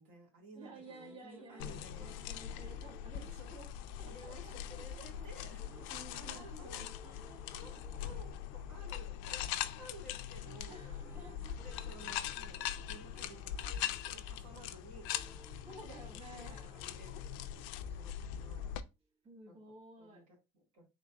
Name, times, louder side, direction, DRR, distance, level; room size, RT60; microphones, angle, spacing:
voice 1, 0.0-2.4 3.4-3.6 4.0-5.6 6.1-6.9 7.5-11.2 11.6-15.1 16.1-16.4 16.7-17.2 17.8-18.7 19.5-20.9, right 1 dB, 85° right, 2.2 m, -55 dB
sound 1, 0.5-4.7 5.5-9.8 10.1-18.6, equal, 10° right, 0.5 m, -62 dB
voice 2, 0.5-3.7 4.0-5.3 5.7-7.1 7.7-7.8 10.7-11.6 13.6-13.7 15.6-16.9 19.2-20.2, right 2 dB, 35° right, 1.6 m, -54 dB
sound 2, 1.6-18.8, left 10 dB, 75° left, 0.4 m, -42 dB
3.9 x 3.2 x 2.5 m
supercardioid pair, 120°, 18 cm